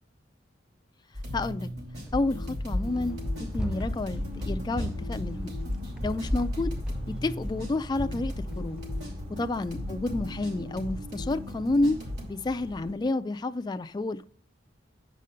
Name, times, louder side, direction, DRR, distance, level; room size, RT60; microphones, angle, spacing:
sound 1, 1.1-12.2, left 1 dB, 60° right, 3.2 m, -38 dB
voice 1, 1.3-1.7 2.1-5.5 6.0-6.7 7.1-8.8 9.3-12.0 12.3-14.3, left 2 dB, 20° left, 0.3 m, -30 dB
Run, 2.0-9.1, left 1 dB, 5° right, 0.7 m, -35 dB
Bird vocalization bird call bird song, 2.8-12.9, equal, 35° right, 0.9 m, -46 dB
8.3 x 5.1 x 5.5 m
head